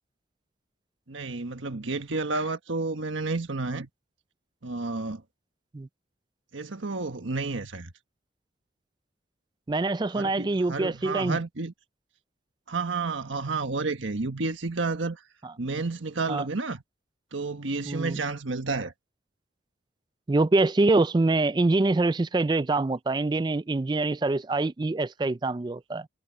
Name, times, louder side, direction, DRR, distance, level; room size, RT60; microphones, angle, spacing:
voice 1, 1.1-3.9 4.6-5.2 6.5-7.9 10.1-11.7 12.7-15.2 15.6-16.8 17.3-18.9, right 3 dB, 80° right, 1.4 m, -31 dB
voice 2, 9.7-11.4 15.4-15.5 16.3-16.4 17.9-18.2 20.3-26.1, right 2 dB, 20° right, 0.3 m, -25 dB
head